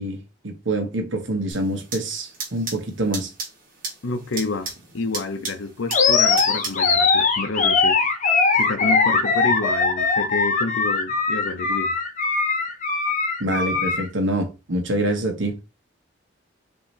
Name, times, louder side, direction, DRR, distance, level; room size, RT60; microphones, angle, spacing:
voice 1, 0.0-3.3 13.4-15.6, right 1 dB, 70° right, 1.1 m, -26 dB
sound 1, 1.5-6.9, right 4 dB, 45° right, 2.0 m, -36 dB
voice 2, 4.0-8.0 8.5-11.9, left 3 dB, 80° left, 0.7 m, -29 dB
Animal, 5.9-14.1, left 4 dB, 40° left, 0.9 m, -20 dB
5.7 x 2.7 x 3.2 m
head